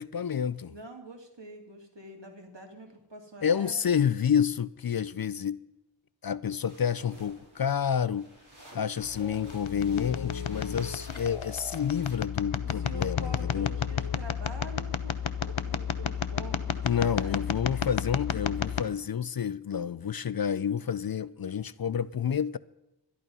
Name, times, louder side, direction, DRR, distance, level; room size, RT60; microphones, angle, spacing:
voice 1, 0.0-0.7 3.4-5.6 6.2-8.3 8.7-13.7 16.8-22.6, left 8 dB, 55° left, 0.5 m, -29 dB
voice 2, 0.7-3.7 12.6-15.1 15.4-17.4, right 2 dB, 65° right, 2.6 m, -46 dB
sound 1, 6.6-12.2, right 1 dB, 45° right, 5.0 m, -53 dB
sound 2, 9.0-18.8, left 8 dB, 85° left, 0.7 m, -32 dB
12.5 x 11.5 x 5.4 m
wide cardioid pair, 55°, 46 cm